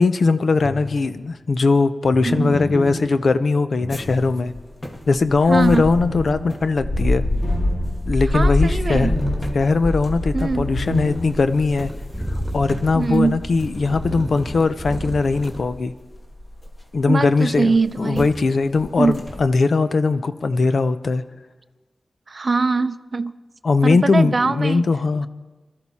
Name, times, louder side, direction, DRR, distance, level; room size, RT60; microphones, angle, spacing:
voice 1, 0.0-4.5 5.1-7.2 8.1-9.1 9.5-11.9 12.5-15.9 16.9-21.2 23.6-25.3, left 4 dB, 75° left, 11 dB, 0.6 m, -20 dB
sound 1, 0.6-1.3 2.1-4.8 5.5-11.7 12.0-12.1 13.9-14.3, left 1 dB, 60° left, 2.0 m, -30 dB
voice 2, 2.2-2.6 5.5-6.0 8.3-9.1 10.3-10.7 12.9-13.4 17.1-18.3 19.0-19.2 22.3-23.4 23.8-24.9, right 4 dB, 50° right, 13 dB, 0.5 m, -22 dB
sound 2, 3.9-17.0 17.7-17.9 18.1-18.4 18.8-19.4, left 1 dB, 40° left, 1.8 m, -27 dB
sound 3, 8.5-15.6, right 1 dB, 15° right, 2.3 m, -35 dB
22.0 x 13.0 x 4.2 m, 1.2 s
wide cardioid pair, 85°, 0 cm